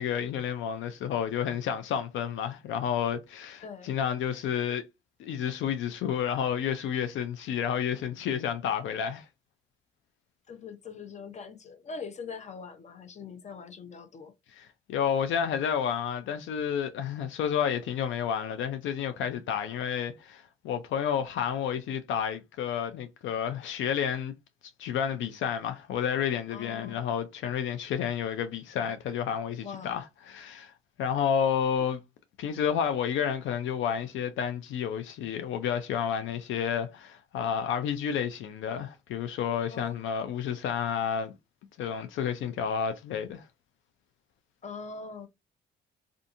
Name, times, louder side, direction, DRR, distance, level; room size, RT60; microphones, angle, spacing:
voice 1, 0.0-4.8 5.2-9.3 14.5-24.3 24.8-30.7 31.0-32.0 32.4-41.3 41.8-43.4, left 8 dB, 75° left, 0.4 m, -30 dB
voice 2, 3.6-3.9 10.5-14.3 26.5-27.0 29.6-30.0 39.7-40.0 44.6-45.3, left 5 dB, 35° left, 0.7 m, -42 dB
2.6 x 2.4 x 2.5 m
cardioid pair, 90°, 20 cm